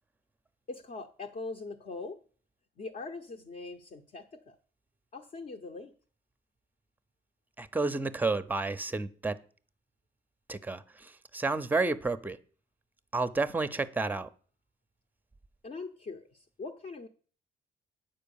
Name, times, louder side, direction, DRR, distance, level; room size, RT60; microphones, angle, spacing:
voice 1, 0.7-2.2 2.8-4.6 5.1-5.9 15.6-17.1, left 3 dB, 40° left, 4 dB, 0.8 m, -42 dB
voice 2, 7.6-9.4 10.5-12.4 13.1-14.3, right 3 dB, 10° right, 14 dB, 0.6 m, -31 dB
9.0 x 4.6 x 7.1 m, 0.42 s
cardioid pair, 90°, 20 cm